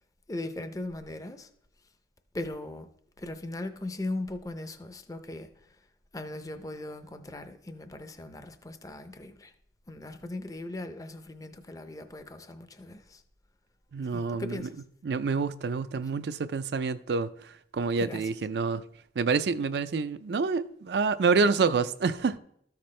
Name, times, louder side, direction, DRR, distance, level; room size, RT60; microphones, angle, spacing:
voice 1, 0.3-1.5 2.3-2.9 3.2-5.5 6.1-9.5 9.9-13.2 14.1-14.7 18.0-18.2, left 2 dB, 20° left, 0.5 m, -38 dB
voice 2, 13.9-14.7 15.0-17.3 17.7-18.8 19.2-22.4, right 4 dB, 70° right, 0.4 m, -27 dB
13.5 x 5.8 x 3.2 m
head